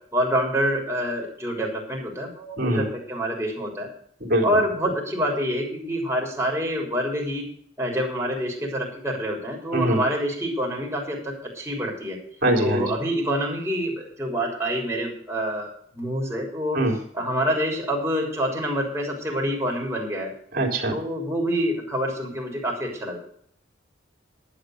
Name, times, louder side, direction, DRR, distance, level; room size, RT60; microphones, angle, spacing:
voice 1, 0.1-3.9 4.4-7.5 7.8-12.2 12.6-16.8 17.1-20.3 20.9-23.2, equal, 10° right, -2 dB, 3.6 m, -27 dB
voice 2, 4.2-4.6 9.7-10.0 12.4-13.0 16.7-16.9 20.5-21.0, right 1 dB, 50° right, 4 dB, 3.3 m, -22 dB
11.5 x 8.8 x 6.5 m, 0.63 s
head